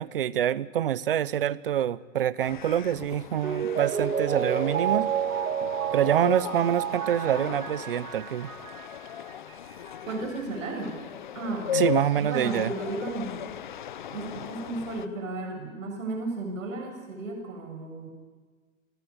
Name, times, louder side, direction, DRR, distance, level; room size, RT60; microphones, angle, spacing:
voice 1, 0.0-5.1 5.9-8.5 11.7-12.7, right 10 dB, 40° right, 20 dB, 0.8 m, -26 dB
sound 1, 2.4-15.1, left 10 dB, 35° left, 0.8 m, -37 dB
Mallet percussion, 3.4-8.9 9.3-9.4, right 8 dB, 90° right, 1.9 m, -30 dB
voice 2, 10.0-11.0 11.3-13.5 14.1-18.1, right 2 dB, 65° right, 3 dB, 7.1 m, -34 dB
30.0 x 17.0 x 9.7 m, 1.4 s
hypercardioid pair, 170°, 42 cm